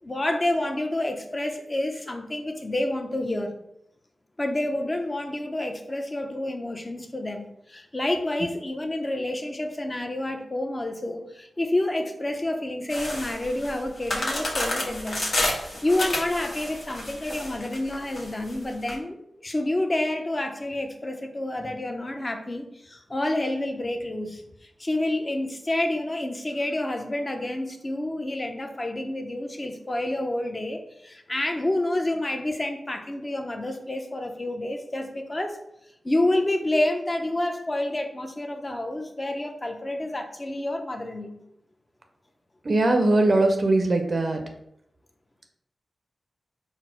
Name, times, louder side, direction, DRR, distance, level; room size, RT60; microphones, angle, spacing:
voice 1, 0.0-3.5 4.4-24.4 24.8-35.6 36.0-41.4, left 1 dB, 30° left, 5 dB, 0.6 m, -29 dB
sound 1, 12.9-18.9, left 1 dB, 55° left, 1.0 m, -30 dB
voice 2, 42.6-44.4, right 2 dB, 50° right, 4 dB, 0.4 m, -21 dB
4.1 x 2.0 x 4.3 m, 0.77 s
cardioid pair, 65°, 0 cm